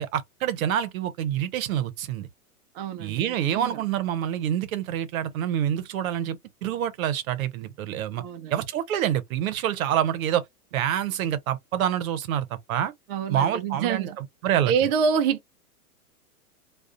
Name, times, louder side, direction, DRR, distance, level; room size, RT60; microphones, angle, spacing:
voice 1, 0.0-2.3 3.0-8.2 8.5-10.4 10.7-12.9 13.3-14.1 14.4-14.7, right 10 dB, 65° right, 0.8 m, -27 dB
voice 2, 2.7-3.8 8.2-8.5 13.1-14.2 14.6-15.5, right 6 dB, 40° right, 0.5 m, -27 dB
2.4 x 2.4 x 2.4 m
hypercardioid pair, 120°, 45 cm